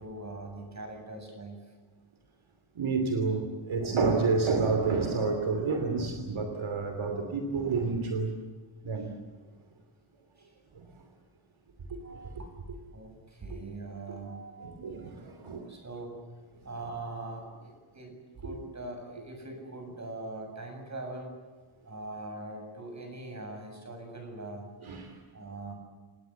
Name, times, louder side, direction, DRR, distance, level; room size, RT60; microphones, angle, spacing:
voice 1, 0.0-1.8 10.4-10.6 12.0-12.5 12.9-15.3 15.7-16.2 16.6-21.4 21.8-24.7 25.3-25.7, right 2 dB, 35° right, 4 dB, 7.5 m, -42 dB
voice 2, 2.7-8.3 8.8-9.1 10.7-11.0 12.1-12.4 14.6-15.7 18.5-18.6 24.8-25.2, right 4 dB, 70° right, 5 dB, 3.0 m, -29 dB
29.5 x 18.5 x 8.4 m, 1.4 s
wide cardioid pair, 145°, 49 cm